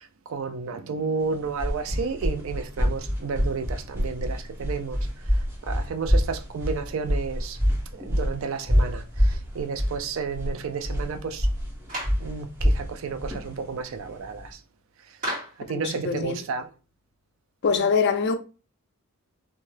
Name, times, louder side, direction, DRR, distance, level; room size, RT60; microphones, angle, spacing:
voice 1, 0.0-5.0 5.7-7.6 7.9-11.5 12.2-14.6 15.7-16.7, right 5 dB, 60° right, 0.4 m, -32 dB
sound 1, 1.2-14.5, equal, 10° right, 0.8 m, -26 dB
Clapping, 11.9-12.3 15.2-15.6, right 1 dB, 35° right, 1.6 m, -32 dB
voice 2, 15.7-16.4 17.6-18.3, left 5 dB, 50° left, 0.4 m, -24 dB
2.7 x 2.2 x 3.2 m
head